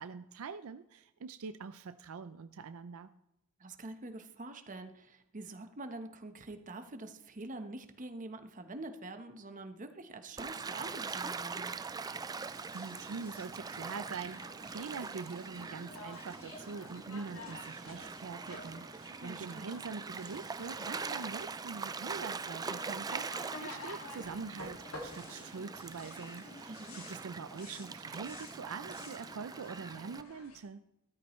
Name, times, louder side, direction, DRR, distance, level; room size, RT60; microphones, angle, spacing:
voice 1, 0.0-3.1 12.4-30.8, right 5 dB, 75° right, 10 dB, 0.5 m, -44 dB
voice 2, 3.6-11.7 19.2-19.7 26.7-27.0, right 2 dB, 40° right, 7 dB, 1.1 m, -45 dB
Gull seagull / Waves surf, 10.4-30.2, right 4 dB, 20° right, 0.3 m, -43 dB
sound 1, 12.4-30.6, left 2 dB, 75° left, 2.2 m, -51 dB
13.5 x 13.0 x 3.1 m, 0.82 s
head